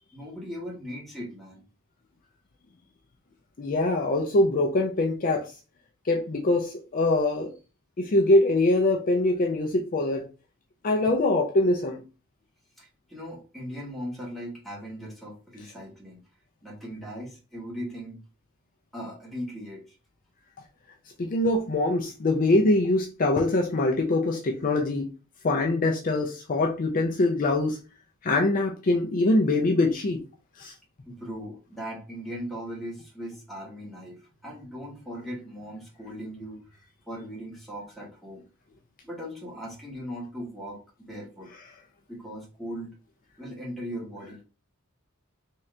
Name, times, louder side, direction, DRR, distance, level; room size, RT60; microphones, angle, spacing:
voice 1, 0.1-1.6 12.8-16.2 16.6-18.2 18.9-19.9 31.0-36.6 37.1-38.4 39.0-40.8 41.1-41.5 42.1-42.9 43.4-44.4, equal, ahead, 1.3 m, -38 dB
voice 2, 3.6-5.5 6.1-7.5 8.0-10.3 10.8-12.0 21.2-25.1 25.4-27.8 28.2-30.2 30.6-30.7, left 2 dB, 40° left, 0.5 m, -23 dB
3.7 x 2.8 x 3.3 m
head